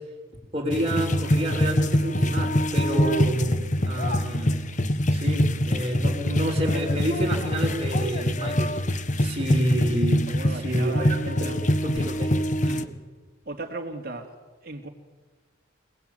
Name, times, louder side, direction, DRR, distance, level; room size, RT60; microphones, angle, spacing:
voice 1, 0.5-3.6 3.8-4.7 5.1-8.8 9.2-11.5 11.8-12.3 12.6-12.9, right 1 dB, 30° right, 5.3 m, -29 dB
sound 1, 0.7-12.9, left 1 dB, 35° left, 1.3 m, -24 dB
voice 2, 10.3-11.6 13.4-14.4 14.6-14.9, right 2 dB, 45° right, 2.9 m, -36 dB
28.0 x 20.0 x 9.4 m
head